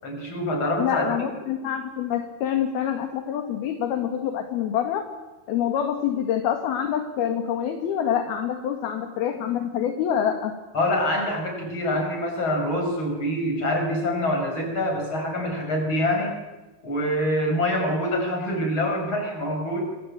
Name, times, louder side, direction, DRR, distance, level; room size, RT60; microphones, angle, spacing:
voice 1, 0.0-1.3 10.7-16.4 16.8-19.9, left 1 dB, 25° left, 3 dB, 7.1 m, -25 dB
voice 2, 0.8-5.1 5.5-10.5, left 9 dB, 60° left, 6 dB, 3.5 m, -26 dB
26.5 x 24.5 x 8.8 m, 1.1 s
omnidirectional pair, 5.3 m